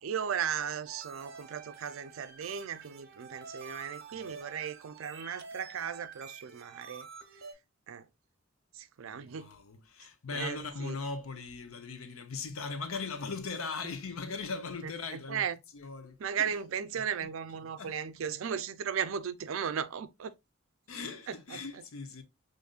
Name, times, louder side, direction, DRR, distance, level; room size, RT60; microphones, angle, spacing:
voice 1, 0.0-7.1 7.9-8.1 8.7-9.6 10.3-11.0 14.8-15.6 16.2-20.3 21.3-21.6, right 8 dB, 70° right, 0.4 m, -36 dB
sound 1, 0.9-7.5, right 4 dB, 50° right, 0.8 m, -48 dB
voice 2, 9.0-15.5 15.7-16.6 17.0-17.3 17.8-18.0 20.9-22.2, left 4 dB, 85° left, 0.7 m, -39 dB
5.1 x 2.6 x 2.3 m
head